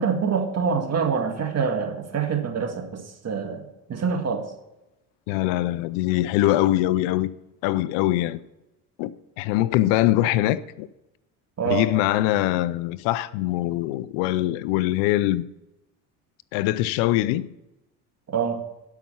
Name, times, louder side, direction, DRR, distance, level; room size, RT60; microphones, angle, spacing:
voice 1, 0.0-4.4 11.6-11.8 18.3-18.6, right 6 dB, 35° right, 2.0 m, -25 dB
voice 2, 5.3-7.3 7.6-8.4 9.0-9.1 9.4-10.9 11.6-15.4 16.5-17.5, left 15 dB, 75° left, 0.6 m, -23 dB
12.0 x 5.9 x 5.6 m
supercardioid pair, 90°, 43 cm